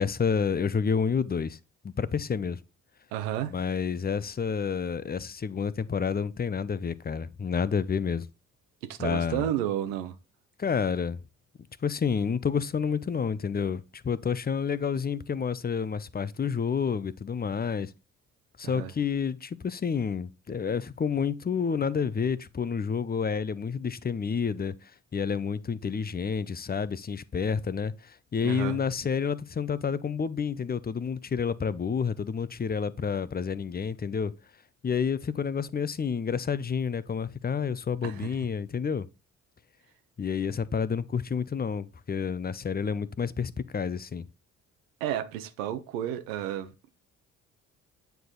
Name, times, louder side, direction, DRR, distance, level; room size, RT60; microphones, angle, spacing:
voice 1, 0.0-1.6 1.8-2.6 3.5-8.3 9.0-9.5 10.6-11.2 11.8-17.9 18.6-34.3 34.8-39.1 40.2-44.3, left 6 dB, 25° left, 0.7 m, -29 dB
voice 2, 3.1-3.5 8.9-10.1 18.6-18.9 28.4-28.8 38.0-38.3 45.0-46.7, right 11 dB, 75° right, 1.0 m, -31 dB
9.2 x 4.8 x 3.9 m
hypercardioid pair, 45°, 39 cm